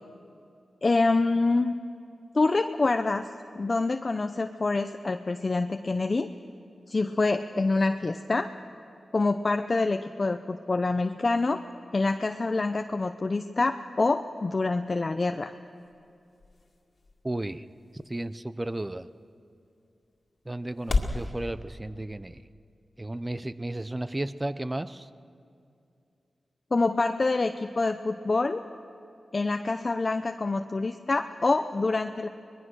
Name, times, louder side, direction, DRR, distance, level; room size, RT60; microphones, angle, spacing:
voice 1, 0.8-1.8 2.3-3.3 3.6-6.3 6.9-8.5 9.1-11.6 11.9-15.5 26.7-28.6 29.3-32.3, left 3 dB, 45° left, 7 dB, 0.7 m, -26 dB
sound 1, 15.0-21.3, left 3 dB, 60° left, 2.0 m, -36 dB
voice 2, 17.2-17.7 17.9-19.1 20.4-22.4 23.0-25.1, right 1 dB, 20° right, 14 dB, 0.7 m, -33 dB
23.5 x 20.0 x 6.4 m, 2.5 s
cardioid pair, 55°, 0 cm